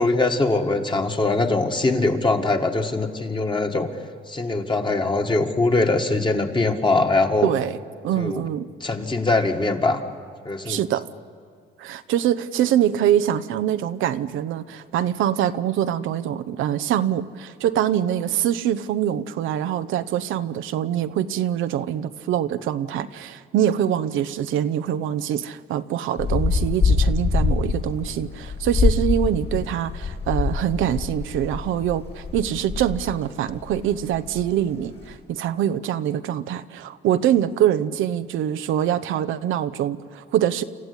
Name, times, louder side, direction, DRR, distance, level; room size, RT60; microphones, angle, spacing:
voice 1, 0.0-3.9 4.3-7.5 8.2-8.4 8.8-10.0 10.4-10.8, left 2 dB, 25° left, 4 dB, 2.1 m, -22 dB
voice 2, 7.4-7.8 8.0-8.7 10.6-11.1 11.8-40.6, right 10 dB, 85° right, 12 dB, 0.8 m, -24 dB
sound 1, 26.2-33.2 33.5-34.7 35.0-35.1, left 4 dB, 60° left, 7.4 m, -24 dB
27.5 x 14.5 x 9.8 m, 2.1 s
cardioid pair, 90°, 20 cm